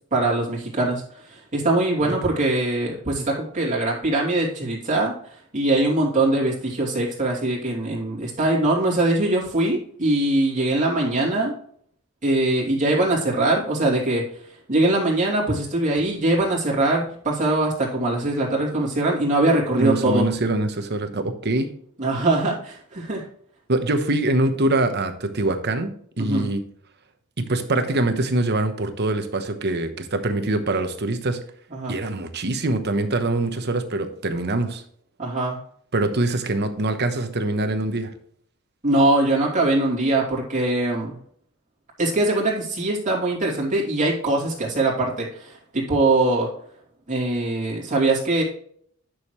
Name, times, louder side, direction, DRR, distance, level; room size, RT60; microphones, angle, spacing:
voice 1, 0.1-5.1 5.5-11.5 12.2-14.2 14.7-20.3 22.0-23.2 26.2-26.5 31.7-31.9 35.2-35.6 38.8-41.2 42.0-46.5 47.1-48.4, right 2 dB, 35° right, -4 dB, 2.8 m, -22 dB
voice 2, 19.8-21.7 23.7-25.9 26.2-26.6 27.5-31.4 31.9-34.8 35.9-38.1, right 2 dB, 50° right, 8 dB, 1.0 m, -24 dB
10.5 x 6.5 x 3.2 m, 0.62 s
head